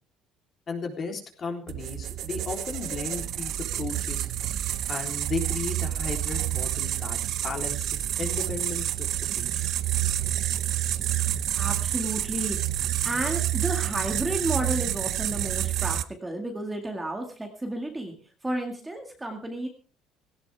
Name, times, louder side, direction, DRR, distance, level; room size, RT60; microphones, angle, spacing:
voice 1, 0.7-4.3 4.9-9.6 11.4-11.5, left 4 dB, 30° left, 3 dB, 3.5 m, -35 dB
sound 1, 1.7-16.0, right 12 dB, 50° right, 0.9 m, -28 dB
voice 2, 11.1-12.7 13.0-19.7, right 1 dB, 10° right, 3 dB, 2.0 m, -32 dB
17.5 x 17.5 x 3.5 m, 0.39 s
cardioid pair, 160°, 0 cm